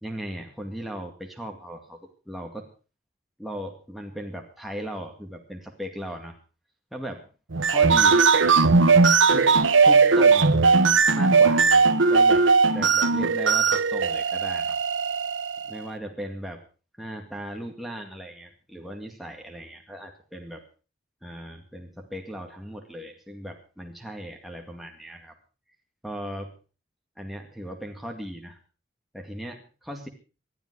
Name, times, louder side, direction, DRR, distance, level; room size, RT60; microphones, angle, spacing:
voice 1, 0.0-2.7 3.4-6.4 6.9-7.3 7.7-8.6 9.3-9.5 9.8-10.7 11.1-12.5 12.7-14.8 15.7-16.6 17.0-20.6 21.2-25.3 26.0-26.5 27.2-28.6 29.1-30.1, equal, ahead, 1 dB, 2.1 m, -37 dB
sound 1, 7.5-15.8, right 4 dB, 90° right, 1.0 m, -19 dB
20.0 x 12.5 x 4.8 m, 0.35 s
head